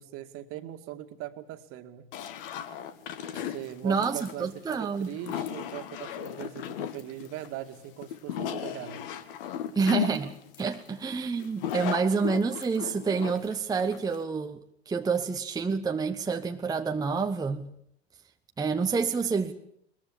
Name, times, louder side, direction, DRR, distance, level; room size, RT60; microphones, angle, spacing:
voice 1, 0.0-2.1 3.5-9.0, right 13 dB, 40° right, 2.2 m, -40 dB
sound 1, 2.1-14.2, left 9 dB, 55° left, 1.9 m, -36 dB
voice 2, 3.8-5.1 9.8-14.6 14.9-17.7 18.6-19.5, right 5 dB, 10° right, 1.0 m, -28 dB
21.5 x 21.5 x 8.6 m
figure-of-eight pair, 80°, 33 cm